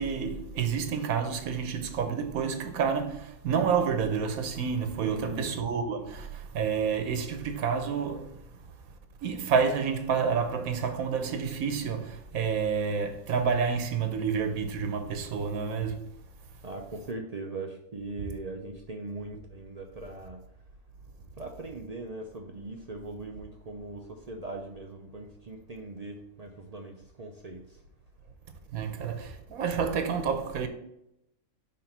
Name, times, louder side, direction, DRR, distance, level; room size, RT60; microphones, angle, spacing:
voice 1, 0.0-8.3 9.2-16.0 28.7-30.7, right 6 dB, 85° right, 1.3 m, -29 dB
voice 2, 5.0-5.6 16.6-20.4 21.4-27.6, right 2 dB, 45° right, 0.5 m, -40 dB
5.9 x 3.7 x 5.8 m
omnidirectional pair, 1.5 m